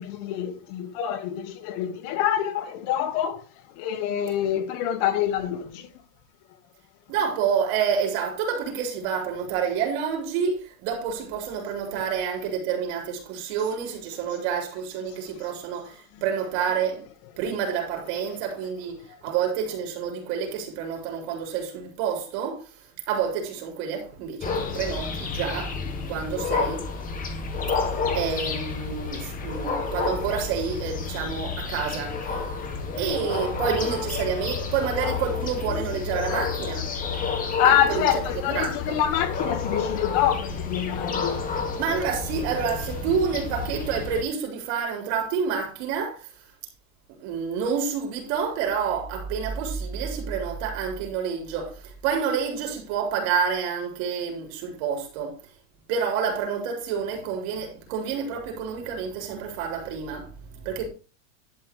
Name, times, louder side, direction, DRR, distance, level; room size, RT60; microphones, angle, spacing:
voice 1, 0.0-3.4 3.8-5.9 17.4-17.6 37.6-41.4, left 10 dB, 40° left, 1.3 m, -26 dB
voice 2, 7.1-17.1 17.4-22.6 23.1-25.8 26.1-26.9 28.1-32.7 33.0-36.9 37.6-38.1 38.5-39.0 41.7-46.3 47.2-55.3 55.9-60.9, right 7 dB, 45° right, 4.5 m, -28 dB
sound 1, 24.4-44.2, left 5 dB, 20° left, 1.7 m, -30 dB
11.5 x 5.8 x 4.9 m
supercardioid pair, 155°, 41 cm